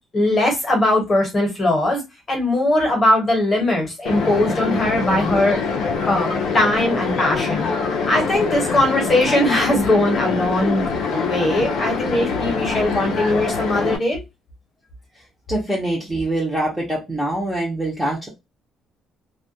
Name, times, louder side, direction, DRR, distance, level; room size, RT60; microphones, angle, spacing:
voice 1, 0.1-2.0 2.3-5.6 6.1-7.7 8.1-10.8 11.1-14.2, left 1 dB, 20° left, 0.9 m, -20 dB
sound 1, 4.0-14.0, left 5 dB, 65° left, 0.5 m, -24 dB
voice 2, 15.5-18.3, right 1 dB, 5° right, 0.6 m, -24 dB
2.2 x 2.2 x 2.6 m
cardioid pair, 175°, 0 cm